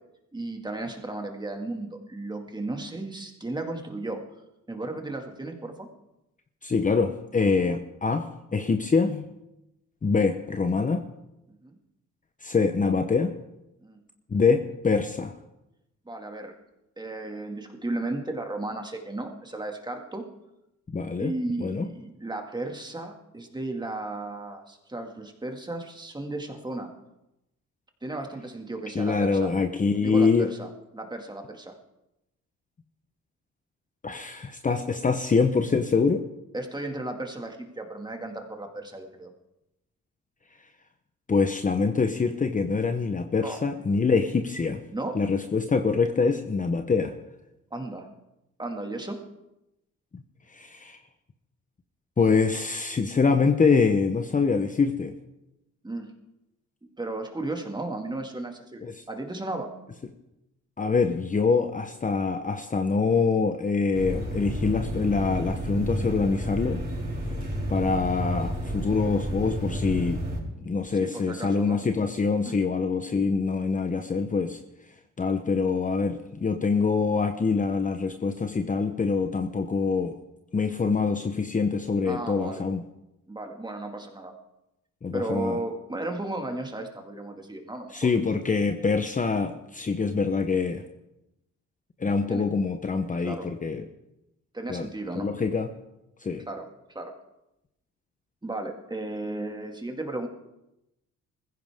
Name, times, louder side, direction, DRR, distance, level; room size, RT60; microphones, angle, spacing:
voice 1, 0.3-4.2 4.7-5.9 11.6-11.8 13.8-14.0 16.1-16.5 17.0-20.3 21.2-26.9 28.0-29.5 30.0-30.7 30.9-31.7 36.5-39.3 43.4-43.6 44.9-45.2 47.7-48.1 48.6-49.2 55.8-56.1 57.0-59.7 68.9-69.0 70.9-71.8 72.4-72.6 82.0-82.6 83.3-84.3 85.1-88.1 92.3-92.4 93.2-93.5 94.5-95.3 96.5-96.7 96.9-97.1 98.4-100.3, right 2 dB, 15° right, 3 dB, 2.2 m, -34 dB
voice 2, 6.6-9.3 10.0-11.0 12.4-13.3 14.3-15.3 20.9-21.3 21.6-21.9 28.9-30.5 34.0-36.2 41.3-44.8 45.1-47.1 50.1-50.2 50.5-51.0 52.2-55.1 58.8-58.9 60.8-66.8 67.7-70.2 70.6-74.6 75.2-80.1 80.5-82.8 85.0-85.6 87.9-90.8 92.0-93.8 94.7-94.9 95.1-95.7 96.2-96.4, left 4 dB, 25° left, 6 dB, 0.9 m, -25 dB
sound 1, 63.9-70.4, equal, 30° right, 6.0 m, -31 dB
20.0 x 15.5 x 3.7 m, 0.91 s
cardioid pair, 90°, 30 cm